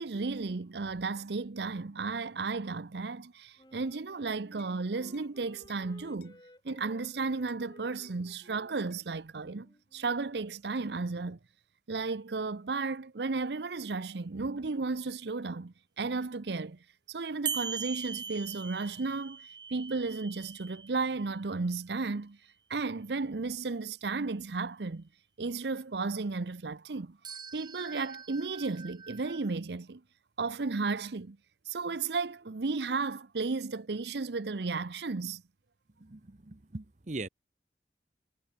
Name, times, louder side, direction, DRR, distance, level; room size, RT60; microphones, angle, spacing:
voice 1, 0.0-6.4 6.6-11.4 11.9-16.8 17.1-19.4 19.7-22.4 22.7-25.1 25.4-27.2 27.5-30.0 30.4-31.4 31.7-35.4, right 4 dB, 75° right, 0.7 m, -34 dB
Wind instrument woodwind instrument, 3.6-10.3, left 1 dB, 25° left, 6.0 m, -57 dB
sound 1, 3.9-4.1 4.6-4.8 5.1-5.3 5.7-5.9 6.2-6.4 6.7-7.1 7.5-7.6 8.0-8.2 8.9-9.1 10.8-10.9, left 9 dB, 60° left, 6.9 m, -64 dB
sound 2, 17.5-21.3 27.2-29.5, right 6 dB, 25° right, 1.6 m, -41 dB
voice 2, 36.0-37.3, right 2 dB, 45° right, 0.9 m, -41 dB
head